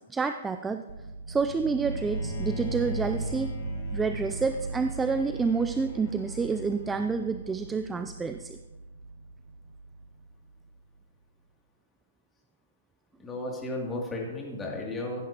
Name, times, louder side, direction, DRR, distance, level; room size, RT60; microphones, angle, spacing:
voice 1, 0.1-0.8 1.3-3.5 3.9-8.6, right 5 dB, 10° right, 9 dB, 0.3 m, -28 dB
sound 1, 0.9-10.7, right 2 dB, 75° right, 0.6 m, -37 dB
Bowed string instrument, 1.9-8.0, left 5 dB, 50° left, 2.5 m, -45 dB
voice 2, 13.2-15.3, left 2 dB, 15° left, -2 dB, 2.6 m, -34 dB
15.5 x 9.3 x 2.9 m, 1.2 s
hypercardioid pair, 135°, 0 cm